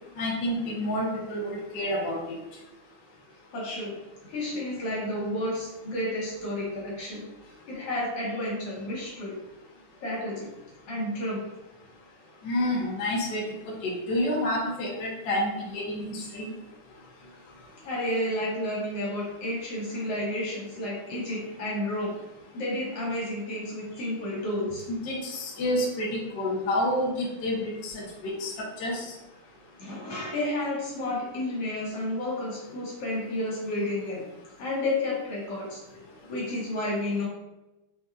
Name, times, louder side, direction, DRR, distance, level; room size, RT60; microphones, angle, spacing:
voice 1, 0.2-2.2 12.4-16.5 24.9-28.5 28.8-29.0, left 1 dB, 80° left, -4 dB, 1.0 m, -29 dB
voice 2, 3.5-4.0 4.3-7.3 7.7-9.4 10.0-10.5 10.9-11.4 17.8-22.2 22.5-24.8 29.8-34.2 34.6-35.8 36.3-37.3, left 1 dB, 55° left, -5 dB, 2.1 m, -31 dB
5.1 x 4.1 x 2.4 m, 0.99 s
omnidirectional pair, 3.6 m